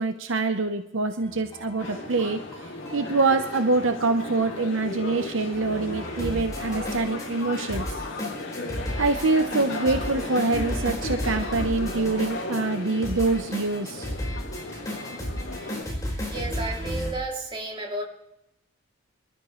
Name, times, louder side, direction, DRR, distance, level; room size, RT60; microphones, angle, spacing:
voice 1, 0.0-2.4 2.9-7.8 9.0-14.1, right 3 dB, 70° right, 7 dB, 0.9 m, -25 dB
sound 1, 1.2-17.1, equal, 15° left, 4.7 m, -34 dB
sound 2, 1.8-15.8, left 2 dB, 70° left, 2.6 m, -35 dB
voice 2, 16.3-18.0, right 2 dB, 25° right, 0 dB, 2.8 m, -32 dB
25.5 x 12.5 x 3.2 m, 0.83 s
head